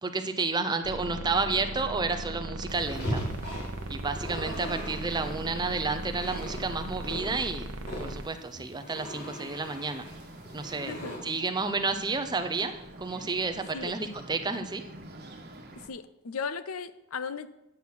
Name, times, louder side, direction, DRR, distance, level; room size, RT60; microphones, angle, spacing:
voice 1, 0.0-3.2 3.9-7.7 8.0-10.0 10.5-11.0 11.2-12.7 13.0-14.8, right 4 dB, 20° right, 0.6 m, -31 dB
sound 1, 0.8-8.3, right 2 dB, 70° right, 0.9 m, -38 dB
sound 2, 2.7-11.2, equal, 50° left, 3.2 m, -39 dB
Bird, 10.0-15.9, right 1 dB, 45° right, 1.2 m, -47 dB
voice 2, 15.8-17.5, left 5 dB, 70° left, 0.6 m, -36 dB
8.9 x 6.1 x 5.7 m
head